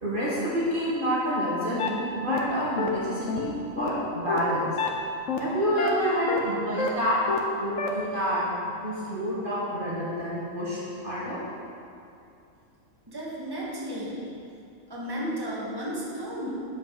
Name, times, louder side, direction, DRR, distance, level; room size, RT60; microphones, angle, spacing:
voice 1, 0.0-4.7 5.4-7.2 7.6-8.5 8.8-11.4, equal, 40° right, -8 dB, 1.8 m, -28 dB
sound 1, 1.8-1.9 2.3-2.4 2.8-2.9 3.3-3.4 3.8-3.9 4.3-4.4 4.8-4.9 5.3-5.4 5.8-5.9 6.3-6.4 6.8-6.9 7.3-7.4 7.8-7.9, left 5 dB, 70° left, 1.3 m, -27 dB
voice 2, 13.1-14.2 14.9-16.5, equal, 15° right, -7 dB, 1.8 m, -33 dB
8.6 x 7.9 x 4.8 m, 2.6 s
omnidirectional pair, 1.4 m